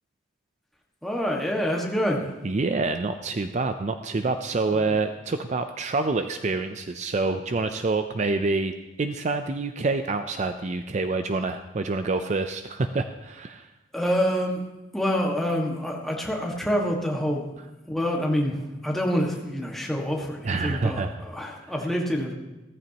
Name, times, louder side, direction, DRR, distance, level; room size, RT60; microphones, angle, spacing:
voice 1, 1.0-2.4 4.7-5.0 13.9-14.6 14.9-17.4 17.9-22.3, equal, ahead, -1 dB, 1.6 m, -27 dB
voice 2, 2.4-13.7 20.4-21.2, right 3 dB, 40° right, 8 dB, 0.5 m, -27 dB
15.5 x 14.0 x 2.9 m, 1.1 s
head